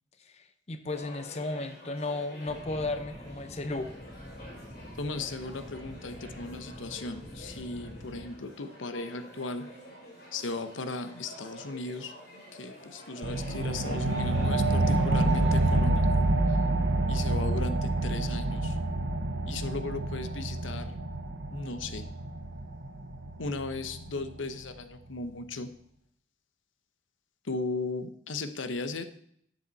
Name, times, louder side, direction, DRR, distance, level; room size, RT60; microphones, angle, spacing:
voice 1, 0.3-3.9, left 2 dB, 35° left, 9 dB, 0.7 m, -34 dB
sound 1, 0.9-15.7, left 1 dB, 55° left, 3.0 m, -48 dB
sound 2, 2.4-8.3, equal, 5° right, 2.9 m, -46 dB
voice 2, 5.0-9.7 10.3-12.2 12.5-16.6 17.1-18.8 19.5-20.9 21.5-22.1 23.4-25.7 27.4-29.0, left 3 dB, 90° left, 10 dB, 0.9 m, -37 dB
sound 3, 13.2-24.3, right 2 dB, 85° right, 1.0 m, -28 dB
12.5 x 8.0 x 4.1 m, 0.67 s
head